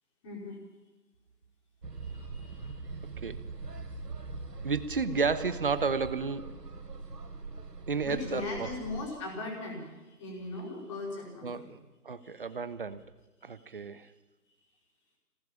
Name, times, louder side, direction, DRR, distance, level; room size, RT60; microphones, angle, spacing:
voice 1, 0.2-0.6 2.0-2.9 8.0-11.7 12.2-12.5 13.4-13.8, left 3 dB, 20° left, 0 dB, 5.1 m, -39 dB
sound 1, 1.8-9.1, right 3 dB, 85° right, 3.4 m, -42 dB
voice 2, 4.6-6.5 7.9-8.7 11.4-11.8 12.0-13.0 13.4-14.1, right 5 dB, 35° right, 14 dB, 1.1 m, -32 dB
24.5 x 19.0 x 7.1 m, 1.1 s
hypercardioid pair, 170°, 47 cm